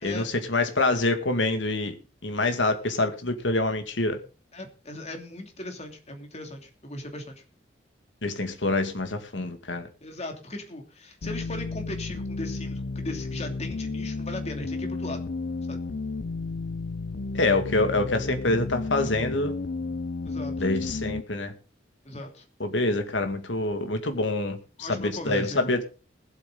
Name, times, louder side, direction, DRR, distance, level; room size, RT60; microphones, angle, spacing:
voice 1, 0.0-1.9 2.2-4.2 8.2-9.9 17.3-19.5 20.6-21.5 22.6-25.8, left 2 dB, 80° left, 2.1 m, -26 dB
voice 2, 4.5-7.4 10.0-15.2 15.7-15.8 20.2-20.5 22.0-22.4 24.8-25.7, left 1 dB, 35° left, 2.8 m, -38 dB
sound 1, 11.2-21.2, left 3 dB, 55° left, 0.6 m, -32 dB
20.5 x 8.2 x 3.9 m
head